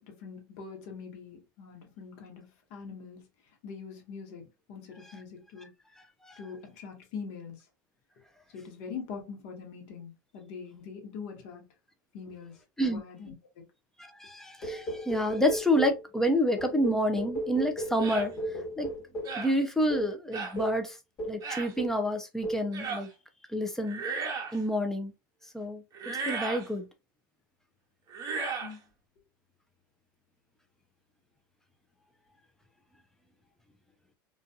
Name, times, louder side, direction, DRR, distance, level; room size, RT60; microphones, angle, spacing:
voice 1, 0.0-3.3 3.6-5.7 6.4-7.7 8.5-11.7 12.1-13.6 28.6-28.8, left 5 dB, 60° left, 1.0 m, -43 dB
voice 2, 14.0-18.9 19.4-21.0 21.3-23.1 23.5-24.0 24.5-25.1 25.5-26.9, equal, 5° left, 0.5 m, -29 dB
sound 1, 14.6-16.1 16.6-19.4 19.9-20.1 20.6-20.8 21.2-21.5 21.8-22.1 22.4-22.7, right 1 dB, 35° left, 1.2 m, -35 dB
sound 2, 18.0-18.3 19.2-19.5 20.3-20.6 21.4-21.7 22.7-23.1 23.8-24.6 25.9-26.7 28.1-28.7, right 4 dB, 30° right, 0.9 m, -35 dB
2.6 x 2.3 x 2.3 m
hypercardioid pair, 115°, 11 cm